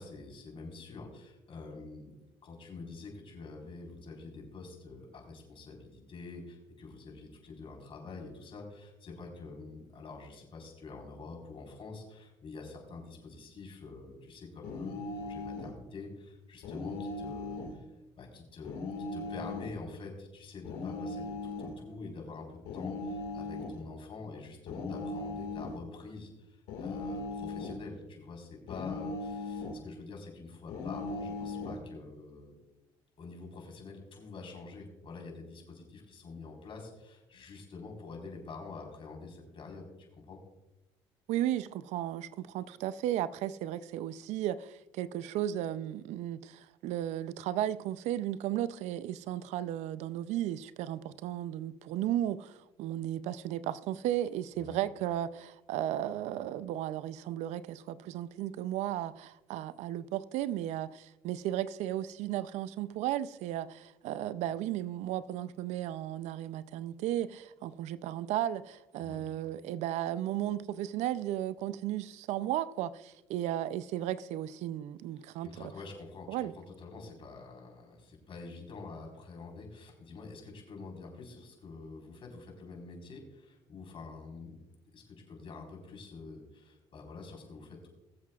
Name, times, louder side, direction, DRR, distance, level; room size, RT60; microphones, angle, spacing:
voice 1, 0.0-2.1 2.4-17.9 18.2-32.5 33.2-40.4 54.6-54.8 69.0-69.2 75.2-84.6 84.9-87.9, left 3 dB, 50° left, 4.3 m, -46 dB
sound 1, 14.6-15.8 16.6-17.8 18.6-19.8 20.6-21.7 22.7-23.8 24.7-25.8 26.7-27.8 28.7-29.8 30.7-31.8, left 3 dB, 80° left, 2.0 m, -38 dB
voice 2, 41.3-75.5 76.3-76.5, right 12 dB, 75° right, 0.5 m, -35 dB
21.5 x 7.5 x 2.4 m
supercardioid pair, 80°, 12 cm